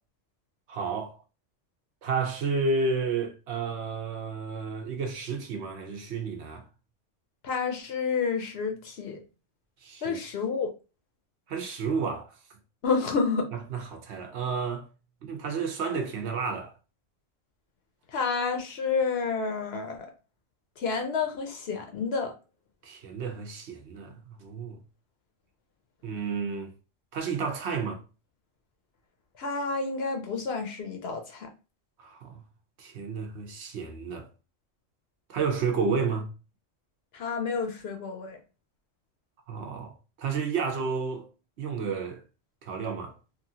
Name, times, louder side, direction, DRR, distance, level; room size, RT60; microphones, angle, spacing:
voice 1, 0.7-1.2 2.0-6.6 9.8-10.2 11.5-12.3 13.5-14.9 15.2-16.7 22.8-24.8 26.0-26.7 27.1-28.0 32.0-32.4 32.8-34.3 35.3-36.3 39.5-39.9 40.2-41.2 41.6-42.2 42.6-43.2, right 5 dB, 65° right, 0.9 m, -31 dB
voice 2, 7.4-9.2 10.0-10.7 12.8-13.5 18.1-20.0 20.8-22.3 29.4-31.5 37.1-38.4, left 5 dB, 65° left, 0.8 m, -29 dB
3.0 x 2.4 x 2.7 m
omnidirectional pair, 1.3 m